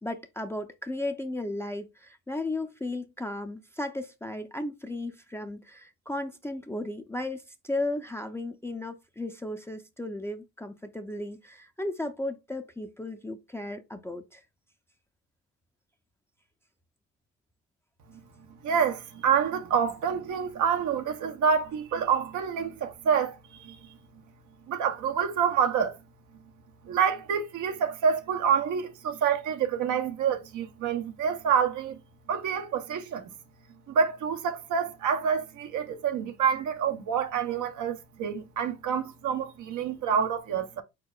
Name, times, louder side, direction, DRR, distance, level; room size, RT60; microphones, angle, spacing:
voice 1, 0.0-14.4, left 2 dB, 10° left, 0.5 m, -35 dB
voice 2, 18.6-23.8 24.7-26.0 26.9-32.0 32.3-33.3 33.9-40.8, right 7 dB, 80° right, 0.7 m, -27 dB
4.5 x 4.1 x 2.3 m
cardioid pair, 90°, 30 cm